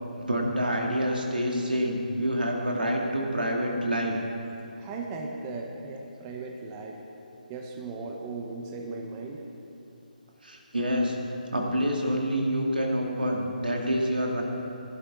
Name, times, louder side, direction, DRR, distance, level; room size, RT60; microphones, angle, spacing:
voice 1, 0.2-4.2 10.4-11.2 11.5-14.4, equal, 85° right, 0 dB, 2.1 m, -27 dB
voice 2, 4.8-7.0 7.5-9.4, right 3 dB, 25° right, 1 dB, 0.9 m, -37 dB
16.0 x 11.0 x 4.0 m, 2.8 s
figure-of-eight pair, 150°, 5 cm